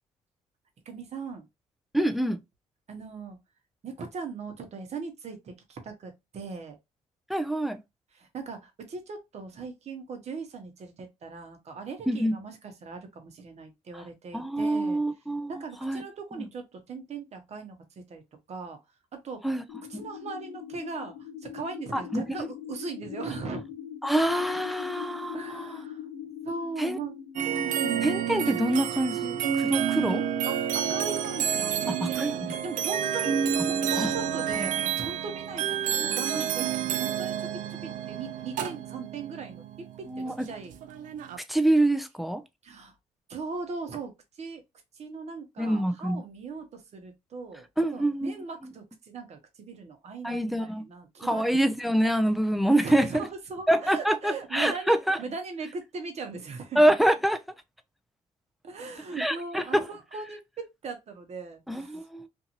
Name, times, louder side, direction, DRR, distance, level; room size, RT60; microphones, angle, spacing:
voice 1, 0.8-1.5 2.9-3.4 3.8-6.8 8.1-15.0 15.5-18.2 18.5-18.8 19.1-19.5 19.9-23.6 25.3-26.0 26.4-27.2 27.6-28.1 29.7-29.9 30.5-39.7 40.0-40.7 42.6-42.9 43.3-44.6 44.9-47.7 47.9-51.4 52.8-56.9 58.6-62.0, right 4 dB, 55° right, 1.0 m, -39 dB
voice 2, 1.9-2.4 7.3-7.8 12.1-12.3 13.9-14.0 14.3-16.0 16.4-16.5 19.4-19.6 19.9-20.0 21.9-22.2 24.0-25.8 26.8-27.0 28.0-30.2 31.9-32.6 34.0-34.1 36.3-36.4 40.1-40.3 41.5-42.4 45.6-46.2 47.8-48.4 48.6-48.7 50.2-50.8 51.2-53.3 53.7-55.2 56.8-57.4 59.2-59.9 61.7-62.3, right 1 dB, ahead, 0.4 m, -26 dB
sound 1, 19.7-34.7, left 9 dB, 85° left, 0.5 m, -43 dB
sound 2, 27.4-41.4, right 9 dB, 70° right, 0.4 m, -29 dB
2.6 x 2.6 x 2.8 m
cardioid pair, 75°, 14 cm